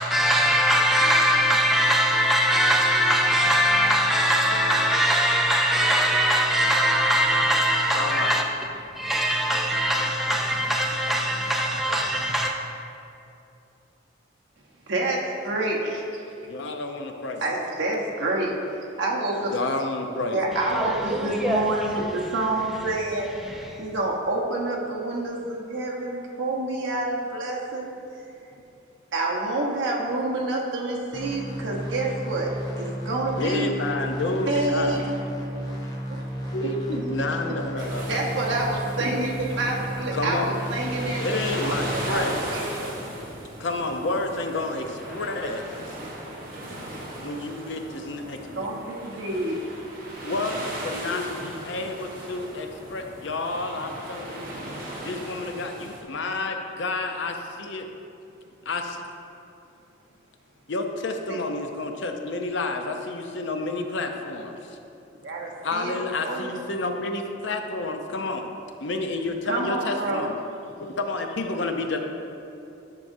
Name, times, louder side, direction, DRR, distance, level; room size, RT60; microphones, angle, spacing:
voice 1, 0.0-8.4 8.9-12.5 20.7-21.7 23.4-23.9, equal, ahead, -1 dB, 0.4 m, -22 dB
voice 2, 7.9-8.3 16.4-17.4 19.3-20.4 33.4-35.0 36.5-38.3 40.1-40.6 41.2-42.4 43.1-45.6 47.2-48.7 50.2-54.4 55.0-57.9 58.7-59.0 60.7-64.8 65.6-68.4 68.8-70.3 70.8-72.0, left 2 dB, 65° left, 4 dB, 0.6 m, -30 dB
voice 3, 14.9-16.0 17.4-19.6 20.3-23.3 23.8-27.9 29.1-32.5 32.8-33.7 34.5-35.0 36.1-36.2 37.8-42.9 48.6-49.6 61.3-61.4 65.2-65.9 66.2-66.5 69.5-70.3, right 2 dB, 70° right, -3 dB, 1.1 m, -28 dB
sound 1, 31.1-42.1, equal, 20° left, 0.9 m, -33 dB
sound 2, 37.8-56.0, right 1 dB, 45° right, 1.1 m, -37 dB
10.5 x 6.2 x 2.7 m, 2.7 s
head